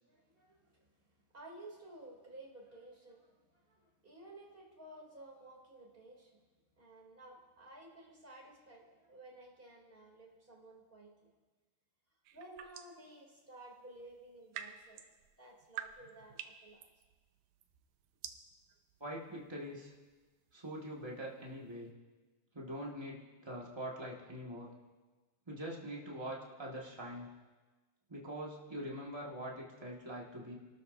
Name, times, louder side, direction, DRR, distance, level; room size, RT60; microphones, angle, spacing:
voice 1, 0.0-6.4 6.8-11.3 12.3-15.0 15.4-16.8, right 1 dB, 15° right, -2 dB, 2.6 m, -55 dB
sound 1, 12.3-13.1 14.1-21.9, right 10 dB, 75° right, 2.2 m, -50 dB
voice 2, 19.0-19.9 20.5-21.9 22.5-24.7 25.5-27.3 28.1-30.5, equal, 35° right, -3 dB, 0.4 m, -43 dB
29.0 x 13.0 x 2.7 m, 1.3 s
omnidirectional pair, 3.8 m